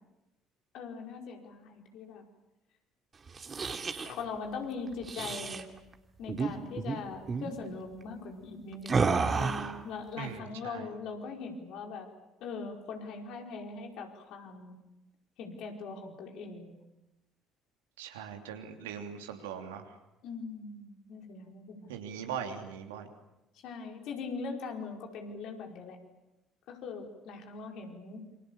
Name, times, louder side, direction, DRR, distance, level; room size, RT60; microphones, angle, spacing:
voice 1, 0.7-2.2 4.0-5.7 6.2-12.1 12.4-14.8 15.4-16.8 20.2-22.0 23.6-26.0 26.7-28.2, left 4 dB, 65° left, 2 dB, 4.9 m, -41 dB
sound 1, 3.3-4.1 5.0-5.6 6.3-6.5 6.8-7.0 7.3-7.5 8.9-9.8, right 4 dB, 35° right, 2.7 m, -30 dB
voice 2, 10.2-10.9 18.0-19.8 21.9-23.1, right 8 dB, 80° right, 4 dB, 3.1 m, -40 dB
28.5 x 26.0 x 7.2 m, 0.97 s
hypercardioid pair, 55°, 0 cm